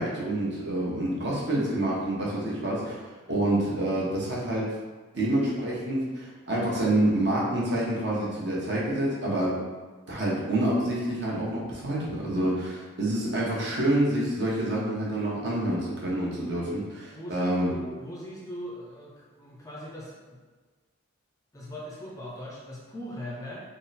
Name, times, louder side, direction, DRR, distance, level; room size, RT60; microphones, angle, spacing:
voice 1, 0.0-3.0 3.3-4.8 5.1-9.6 10.1-17.7, right 1 dB, 55° right, -6 dB, 1.0 m, -27 dB
voice 2, 17.1-20.4 21.5-23.6, equal, 15° left, -4 dB, 0.5 m, -40 dB
3.7 x 2.1 x 4.1 m, 1.3 s
head